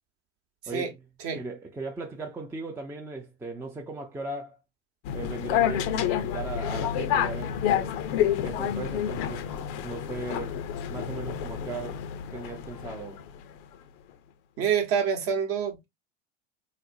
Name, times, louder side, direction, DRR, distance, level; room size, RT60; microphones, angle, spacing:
voice 1, 0.7-1.0 1.3-4.6 5.1-8.0 8.4-10.6 10.9-12.1 12.3-13.2, right 3 dB, 5° right, 0.4 m, -38 dB
sound 1, 5.0-13.4, left 10 dB, 50° left, 0.5 m, -29 dB
voice 2, 14.6-15.9, right 7 dB, 40° right, 0.9 m, -26 dB
4.1 x 2.0 x 2.6 m
hypercardioid pair, 85°, 35 cm